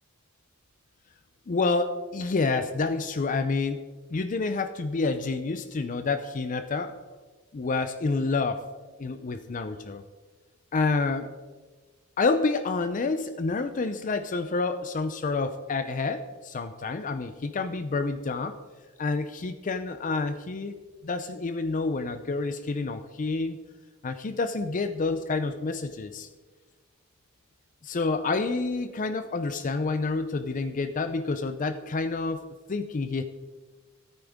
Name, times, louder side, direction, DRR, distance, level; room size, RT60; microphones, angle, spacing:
voice 1, 1.5-3.8 4.1-6.9 7.5-8.7 9.0-10.0 10.7-11.3 12.2-18.5 19.0-20.7 21.0-23.6 24.0-26.3 27.8-33.2, left 3 dB, 40° left, 9 dB, 0.5 m, -28 dB
13.5 x 8.9 x 3.5 m, 1.3 s
head